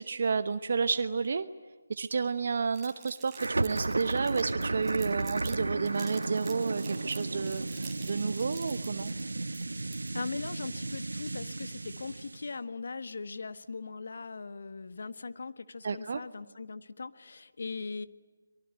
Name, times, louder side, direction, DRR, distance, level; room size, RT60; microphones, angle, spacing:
voice 1, 0.0-1.5 1.9-9.1 15.8-16.2, right 5 dB, 50° right, 11 dB, 1.0 m, -31 dB
Crumpling crinkling, 2.7-5.6 5.9-10.3, right 7 dB, 15° right, 4.3 m, -50 dB
sound 1, 3.4-12.5, right 2 dB, 70° right, 1.1 m, -34 dB
voice 2, 10.1-18.1, left 4 dB, 55° left, 12 dB, 1.5 m, -40 dB
24.0 x 23.0 x 9.7 m, 1.3 s
figure-of-eight pair, 155°, 0 cm